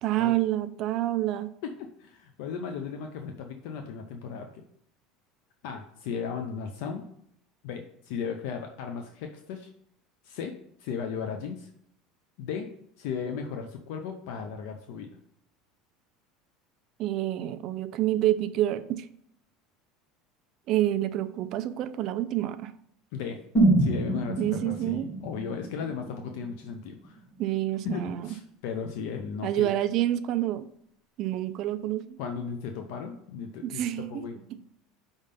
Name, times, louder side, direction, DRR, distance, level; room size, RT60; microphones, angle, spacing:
voice 1, 0.0-1.5 17.0-19.1 20.7-22.7 24.4-25.1 27.4-28.3 29.4-30.7 31.2-32.2 33.6-34.6, right 13 dB, 40° right, 12 dB, 0.4 m, -28 dB
voice 2, 1.6-4.6 5.6-7.1 7.6-9.7 10.2-11.7 12.4-12.7 13.0-15.1 23.1-23.4 23.8-27.2 27.8-29.7 32.2-34.3, left 6 dB, 65° left, 5 dB, 0.6 m, -36 dB
sound 1, 23.5-27.5 27.8-27.9, right 2 dB, 10° left, 2.5 m, -27 dB
5.4 x 3.5 x 5.2 m, 0.69 s
cardioid pair, 175°, 0 cm